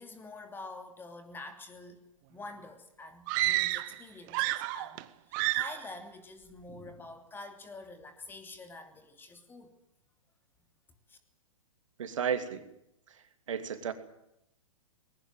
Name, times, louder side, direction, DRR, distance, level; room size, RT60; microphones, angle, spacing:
voice 1, 0.0-5.1 5.5-9.7 11.1-11.2, left 2 dB, 10° left, 7 dB, 2.9 m, -47 dB
sound 1, 3.3-4.0 4.3-5.0 5.3-5.9, right 18 dB, 35° right, 1.3 m, -30 dB
voice 2, 12.0-12.7 13.1-13.9, right 7 dB, 65° right, 8 dB, 2.9 m, -34 dB
20.5 x 18.5 x 9.0 m, 0.79 s
figure-of-eight pair, 115°, 18 cm